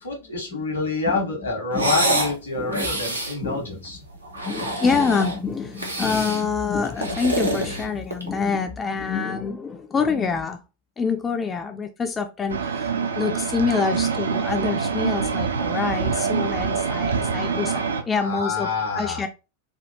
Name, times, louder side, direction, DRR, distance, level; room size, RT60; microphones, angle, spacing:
voice 1, 0.0-4.0 18.1-19.2, left 3 dB, 75° left, 1 dB, 1.4 m, -27 dB
sound 1, 1.7-2.3 2.7-3.4 4.2-5.4 5.8-6.4 6.8-8.4, right 1 dB, 85° right, 0.8 m, -26 dB
voice 2, 2.6-3.0 3.4-3.8 4.3-10.6 11.0-18.7 18.9-19.3, left 5 dB, 20° left, 6 dB, 0.3 m, -26 dB
sound 2, 12.5-18.0, right 5 dB, 70° right, 0.4 m, -25 dB
3.4 x 2.2 x 2.7 m, 0.29 s
figure-of-eight pair, 90°, 0 cm